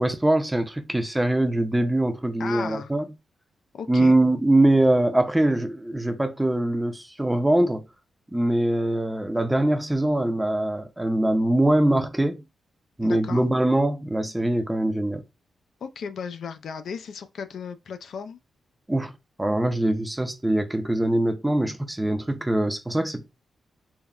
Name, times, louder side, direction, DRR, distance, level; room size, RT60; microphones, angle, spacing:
voice 1, 0.0-3.1 3.9-7.9 8.3-12.4 13.0-15.2 18.9-19.1 19.4-23.3, right 1 dB, 10° right, 0.4 m, -23 dB
voice 2, 2.4-2.9 3.7-4.1 13.0-13.4 15.8-18.4, left 6 dB, 70° left, 0.3 m, -35 dB
3.4 x 2.1 x 2.3 m
wide cardioid pair, 120°, 0 cm